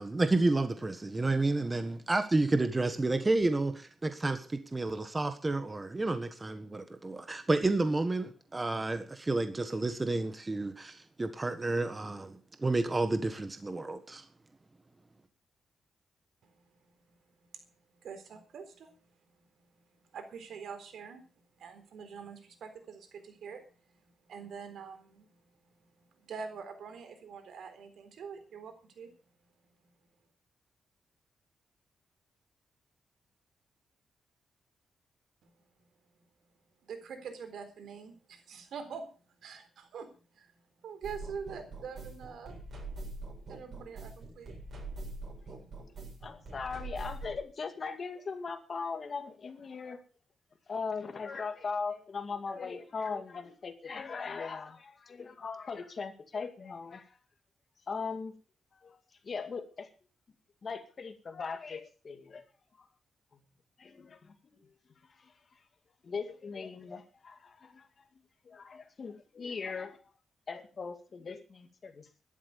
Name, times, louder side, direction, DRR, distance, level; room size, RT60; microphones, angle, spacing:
voice 1, 0.0-14.2, right 2 dB, 20° right, 9 dB, 1.4 m, -30 dB
voice 2, 16.4-29.3 29.8-29.9 35.4-36.2 36.8-42.7 43.5-44.5, right 6 dB, 80° right, 8 dB, 3.9 m, -46 dB
sound 1, 41.0-47.4, right 2 dB, 50° right, 7.5 m, -43 dB
voice 3, 46.2-50.0 50.7-57.2 57.9-58.4 58.7-59.0 59.2-59.9 60.6-62.4 62.8-62.9 63.8-64.6 65.0-65.6 66.0-67.9 68.4-70.0 70.5-72.1, left 5 dB, 40° left, 8 dB, 2.3 m, -39 dB
13.0 x 12.0 x 7.0 m, 0.38 s
wide cardioid pair, 130°, 0 cm